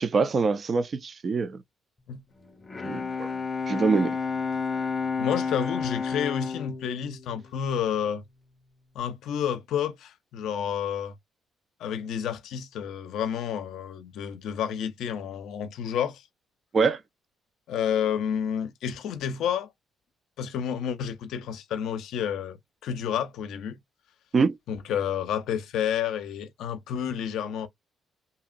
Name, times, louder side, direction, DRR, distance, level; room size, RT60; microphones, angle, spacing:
voice 1, 0.0-1.6 2.8-3.3 3.7-4.2 16.7-17.0 24.3-24.6, right 4 dB, 45° right, 0.5 m, -24 dB
Bowed string instrument, 2.5-8.2, left 5 dB, 30° left, 0.6 m, -31 dB
voice 2, 5.2-8.2 8.9-11.1 11.8-16.3 17.7-19.7 20.4-22.6 22.8-23.8 24.7-27.7, left 8 dB, 80° left, 0.5 m, -30 dB
2.8 x 2.7 x 2.4 m
cardioid pair, 90°, 0 cm